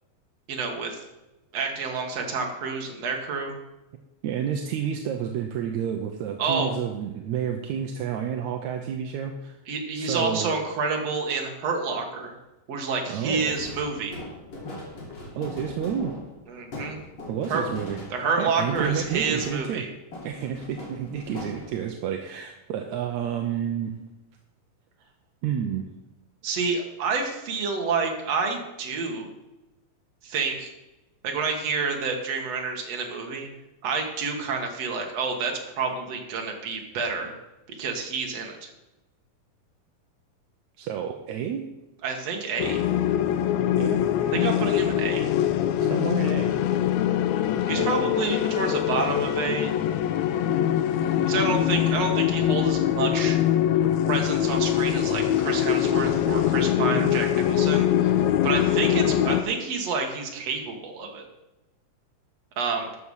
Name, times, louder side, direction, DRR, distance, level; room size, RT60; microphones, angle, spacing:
voice 1, 0.5-1.0 1.5-3.6 6.4-6.7 9.7-12.3 12.7-14.1 16.5-17.0 17.5-17.7 18.1-19.9 26.4-29.3 30.2-30.7 31.2-33.5 33.8-37.3 37.8-38.6 42.0-42.8 44.3-45.3 47.7-49.7 51.3-53.4 54.1-61.3 62.6-62.9, right 4 dB, 50° right, 2 dB, 2.6 m, -28 dB
voice 2, 4.2-9.5 10.0-10.5 13.1-13.5 15.4-16.1 17.3-19.8 20.2-24.0 25.4-25.8 40.8-41.7 43.8-44.0 45.8-46.5 47.8-47.9 56.8-57.1, right 8 dB, 70° right, 3 dB, 1.9 m, -30 dB
sound 1, 13.4-19.9 20.1-22.0, left 1 dB, 45° left, 3.8 m, -39 dB
sound 2, 42.6-59.4, left 11 dB, 80° left, 1.6 m, -23 dB
13.0 x 7.0 x 6.5 m, 1.0 s
omnidirectional pair, 4.0 m